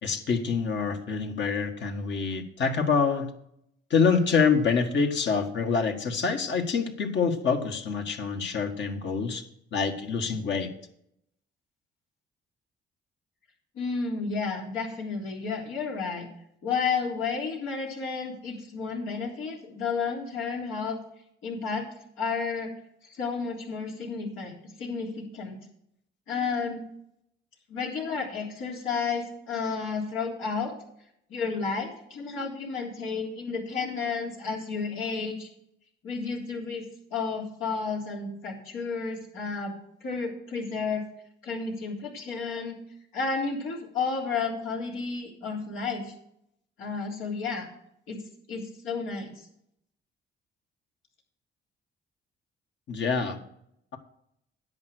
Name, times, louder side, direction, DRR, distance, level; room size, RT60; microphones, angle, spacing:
voice 1, 0.0-3.3 3.9-9.4 9.7-10.7 52.9-53.4, left 5 dB, 65° left, 4 dB, 1.7 m, -26 dB
voice 2, 13.8-16.3 16.6-21.0 21.4-21.9 22.2-22.7 23.0-25.6 26.3-26.8 27.7-30.7 31.3-35.5 36.0-36.8 37.1-39.7 40.0-41.1 41.4-42.8 43.1-46.1 46.8-47.7 48.1-48.2 48.5-49.5, left 5 dB, 90° left, -2 dB, 3.6 m, -32 dB
10.5 x 8.0 x 6.5 m, 0.74 s
cardioid pair, 90°, 20 cm